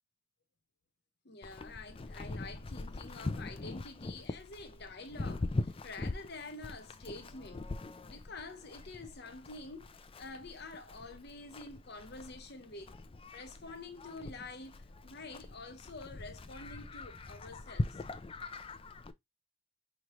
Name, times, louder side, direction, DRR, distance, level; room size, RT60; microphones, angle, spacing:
voice 1, 1.2-7.7 8.0-9.9 10.2-13.0 13.3-18.0, left 3 dB, 60° left, 1.0 m, -48 dB
Livestock farm animals working animals, 1.4-19.1, left 2 dB, 30° left, 0.4 m, -42 dB
5.2 x 3.0 x 3.0 m
head